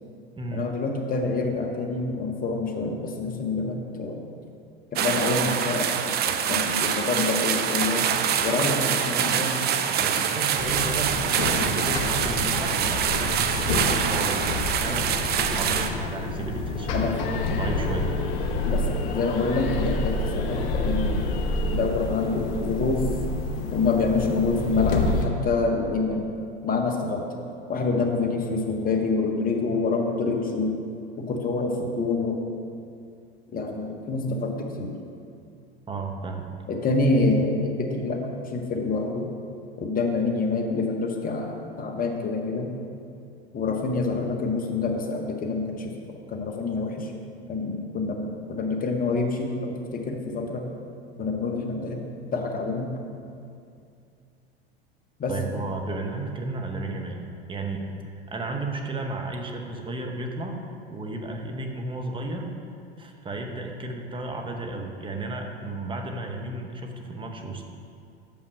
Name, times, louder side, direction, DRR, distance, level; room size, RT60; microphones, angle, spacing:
voice 1, 0.5-4.2 4.9-8.1 8.4-9.5 16.9-17.1 18.6-21.2 21.7-23.0 23.7-26.3 26.6-27.4 27.7-30.8 31.2-32.4 33.5-35.0 36.7-39.3 39.8-42.7 43.5-45.9 46.3-47.1 47.5-50.7 51.2-52.0 52.3-52.9 55.2-55.4, left 3 dB, 25° left, 2 dB, 1.1 m, -27 dB
sound 1, 5.0-15.9, right 8 dB, 30° right, 0.5 m, -25 dB
voice 2, 10.0-17.1 17.5-18.1 35.9-36.5 55.3-57.9 58.3-60.6 60.9-62.5 63.0-67.6, right 2 dB, 15° right, 3 dB, 0.9 m, -33 dB
sound 2, 10.6-25.2, left 3 dB, 60° left, 1.0 m, -28 dB
6.7 x 5.5 x 5.7 m, 2.4 s
hypercardioid pair, 90°, 32 cm